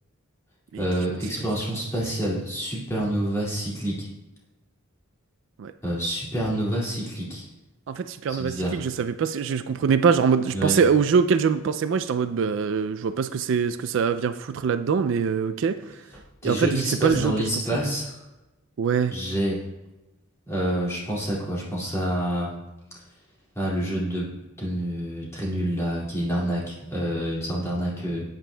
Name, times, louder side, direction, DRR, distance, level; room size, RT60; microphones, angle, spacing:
voice 1, 0.8-4.1 5.8-7.4 8.3-8.8 10.5-10.8 16.4-18.1 19.1-19.6 20.5-22.5 23.6-24.3 24.6-28.2, right 1 dB, 15° left, -6 dB, 2.3 m, -27 dB
voice 2, 7.9-15.8 16.4-17.5 18.8-19.1, right 6 dB, 60° right, 11 dB, 0.3 m, -23 dB
11.0 x 8.9 x 2.2 m, 1.0 s
head